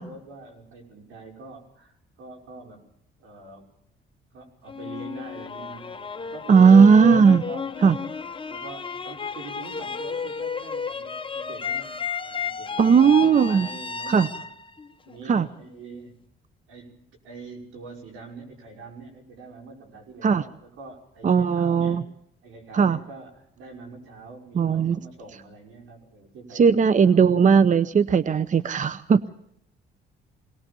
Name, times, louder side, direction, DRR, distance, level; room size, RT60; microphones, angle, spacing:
voice 1, 0.0-1.9 2.2-2.8 3.2-3.7 4.3-7.1 7.5-7.7 8.5-14.5 15.1-16.3 16.7-22.0 22.4-27.2, right 3 dB, 85° right, 2 dB, 5.8 m, -44 dB
sound 1, 4.7-15.7, left 5 dB, 25° left, 1.0 m, -33 dB
voice 2, 6.5-7.4 7.8-8.0 12.8-13.7 14.1-14.3 15.3-15.5 20.2-20.4 21.2-22.0 22.7-23.0 24.6-25.0 26.5-29.2, right 6 dB, 40° right, 15 dB, 0.8 m, -17 dB
22.5 x 19.0 x 6.9 m, 0.74 s
cardioid pair, 90°, 20 cm